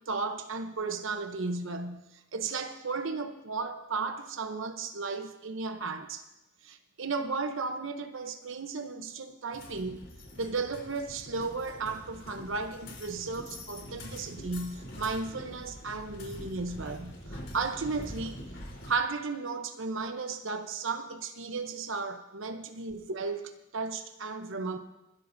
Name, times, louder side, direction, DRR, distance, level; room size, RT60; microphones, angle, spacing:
voice 1, 0.1-2.1 2.3-6.2 6.6-10.1 10.4-18.5 18.9-24.8, right 4 dB, 80° right, 0.9 m, -34 dB
sound 1, 9.5-18.9, equal, 70° left, 3.8 m, -44 dB
24.5 x 12.5 x 2.7 m
head